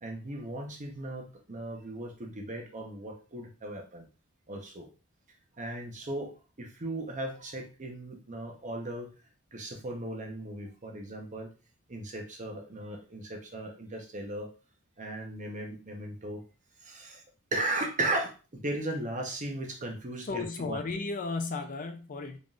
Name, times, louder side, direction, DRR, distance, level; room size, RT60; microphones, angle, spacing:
voice 1, 0.0-4.1 4.5-4.9 5.5-9.1 9.5-11.5 11.9-14.5 15.0-16.4 16.8-17.2 17.5-20.8, right 1 dB, 35° right, 2 dB, 0.8 m, -36 dB
voice 2, 20.3-22.4, left 3 dB, 40° left, 6 dB, 0.4 m, -34 dB
3.8 x 3.6 x 2.4 m, 0.34 s
head